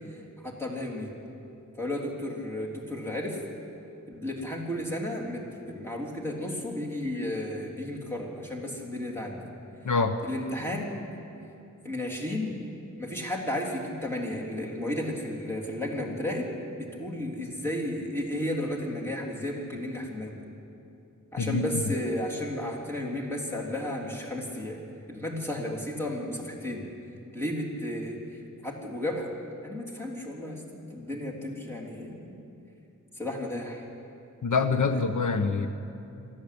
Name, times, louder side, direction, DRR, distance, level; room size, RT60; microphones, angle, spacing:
voice 1, 0.4-1.1 1.8-3.4 4.1-9.5 10.2-10.9 11.8-12.6 13.0-20.4 21.3-24.8 25.1-26.9 27.3-28.2 28.6-29.3 29.6-32.3 33.2-33.8 34.9-35.1, left 1 dB, 10° left, -2 dB, 3.5 m, -33 dB
voice 2, 9.8-10.2 21.4-21.7 34.4-35.7, left 4 dB, 75° left, 8 dB, 1.0 m, -25 dB
23.0 x 14.5 x 8.6 m, 2.7 s
wide cardioid pair, 110°, 31 cm